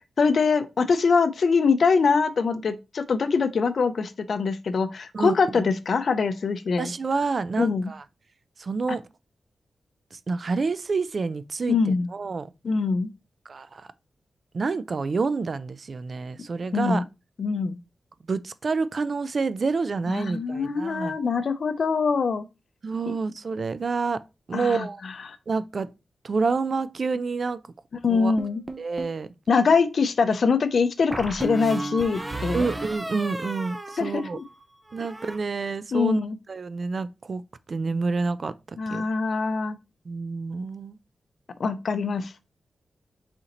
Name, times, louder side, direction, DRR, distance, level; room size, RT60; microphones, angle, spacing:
voice 1, 0.2-6.9 7.6-7.9 11.7-12.1 12.6-13.1 16.7-17.0 17.4-17.8 20.1-22.4 24.5-24.9 25.3-25.4 28.0-28.6 29.5-32.7 34.0-34.4 35.0-35.1 35.9-36.4 38.8-39.8 41.6-42.3, left 5 dB, 65° left, 0.5 m, -23 dB
voice 2, 5.1-5.7 6.8-8.0 8.6-9.0 10.1-12.5 13.5-13.9 14.5-17.0 18.3-21.2 22.8-24.2 24.5-25.0 25.5-25.9 26.2-27.6 28.1-28.4 28.8-29.3 32.5-34.4 34.9-36.2 36.5-37.4 37.7-38.5 38.9-39.0 40.1-41.0, right 4 dB, 55° right, 0.3 m, -28 dB
sound 1, 28.4-29.2 31.1-34.6 34.9-35.4, right 2 dB, 20° right, 0.7 m, -34 dB
4.2 x 3.8 x 2.9 m
cardioid pair, 75°, 0 cm